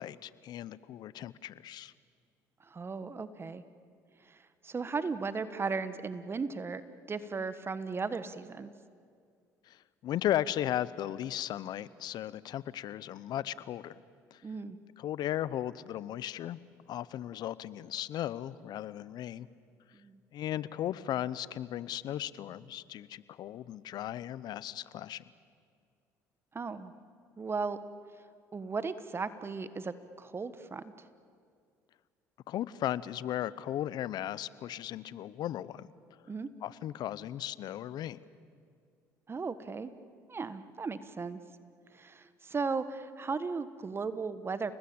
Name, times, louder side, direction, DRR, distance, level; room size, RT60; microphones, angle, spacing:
voice 1, 0.0-1.9 9.6-14.0 14.3-14.4 15.0-16.6 16.9-19.5 20.3-25.2 32.5-35.9 36.6-38.2, left 12 dB, 60° left, 18 dB, 0.9 m, -36 dB
voice 2, 2.6-3.6 4.2-6.8 7.1-8.7 14.4-14.8 19.9-20.2 26.5-26.9 27.4-27.8 28.5-31.1 36.3-36.5 39.3-39.9 40.3-41.4 41.9-44.7, right 4 dB, 30° right, 13 dB, 1.3 m, -36 dB
30.0 x 19.5 x 8.8 m, 2.2 s
supercardioid pair, 70°, 8 cm